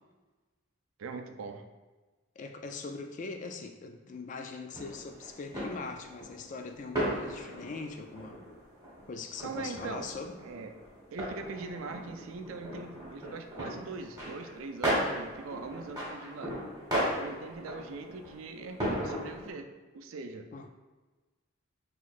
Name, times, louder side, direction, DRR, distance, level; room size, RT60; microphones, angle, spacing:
voice 1, 1.0-1.6 9.4-10.1 10.4-10.7 11.1-16.6 17.2-19.7 19.9-20.5, right 4 dB, 80° right, 6 dB, 0.4 m, -41 dB
voice 2, 2.4-8.4 9.1-10.4 20.5-20.7, left 4 dB, 40° left, 6 dB, 0.3 m, -41 dB
sound 1, 4.7-19.5, equal, 20° right, 1.5 m, -37 dB
5.7 x 3.0 x 2.4 m, 1.2 s
head